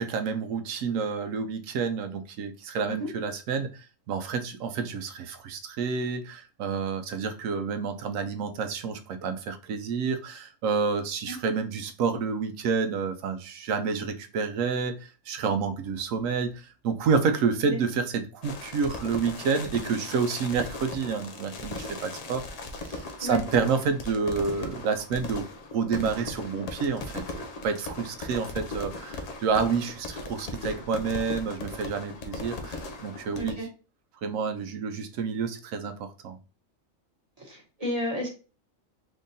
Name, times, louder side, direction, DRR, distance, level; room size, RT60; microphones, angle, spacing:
voice 1, 0.0-3.7 4.1-22.4 22.8-27.2 27.6-33.7 34.2-36.4, right 5 dB, 75° right, 1.0 m, -29 dB
sound 1, 18.4-33.5, left 2 dB, 65° left, 0.4 m, -38 dB
voice 2, 33.3-33.7 37.4-38.3, equal, 30° right, 1.3 m, -32 dB
3.7 x 3.5 x 2.6 m
omnidirectional pair, 1.4 m